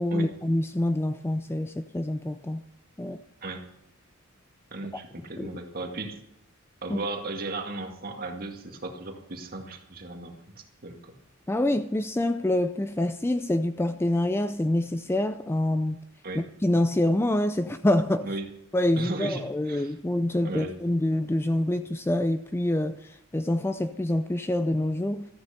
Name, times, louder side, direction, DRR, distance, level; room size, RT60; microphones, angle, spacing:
voice 1, 0.0-2.6 3.0-3.2 5.4-5.5 6.9-7.0 11.5-16.0 16.3-18.3 18.7-25.3, left 1 dB, 10° left, 0.4 m, -26 dB
voice 2, 4.7-6.2 6.8-10.3 10.8-11.1 16.2-16.4 18.2-18.5 19.0-19.9 20.4-20.7, right 2 dB, 45° right, 2.0 m, -35 dB
14.0 x 9.6 x 6.7 m
head